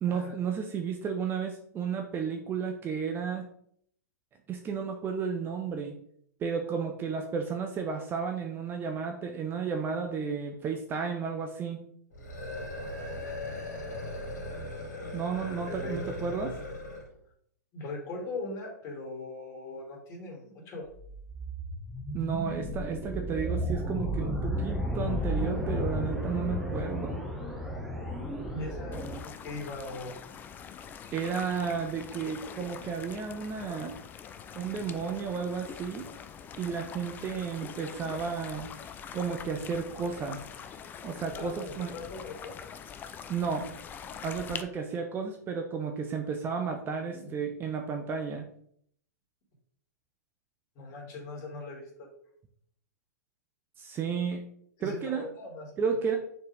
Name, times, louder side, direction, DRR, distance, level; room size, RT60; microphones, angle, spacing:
voice 1, 0.0-3.4 4.5-5.9 6.4-11.8 15.1-16.5 22.1-27.2 31.1-33.9 34.6-36.0 36.6-38.7 39.1-40.4 41.0-41.9 43.3-43.7 44.2-48.5 53.8-54.4 54.8-55.3 55.8-56.2, right 6 dB, 20° right, 4 dB, 0.7 m, -33 dB
sound 1, 12.1-17.1, left 1 dB, 70° left, 2.2 m, -38 dB
voice 2, 15.3-16.5 17.7-20.9 28.3-30.1 34.6-34.8 41.3-42.5 47.1-47.3 50.8-52.1 54.8-55.8, left 2 dB, 35° left, -1 dB, 2.5 m, -40 dB
sound 2, 20.9-29.2, equal, ahead, 1.0 m, -33 dB
sound 3, 28.9-44.6, left 7 dB, 20° left, 0.4 m, -44 dB
6.5 x 4.4 x 3.5 m, 0.66 s
figure-of-eight pair, 110°, 10 cm